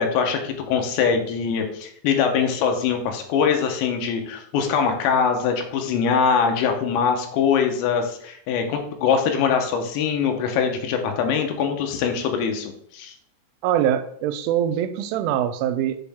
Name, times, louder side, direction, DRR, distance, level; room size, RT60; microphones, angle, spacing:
voice 1, 0.0-13.1, left 6 dB, 75° left, 4 dB, 2.9 m, -23 dB
voice 2, 13.6-16.0, right 10 dB, 90° right, 9 dB, 3.1 m, -23 dB
7.4 x 4.4 x 3.4 m, 0.66 s
omnidirectional pair, 5.5 m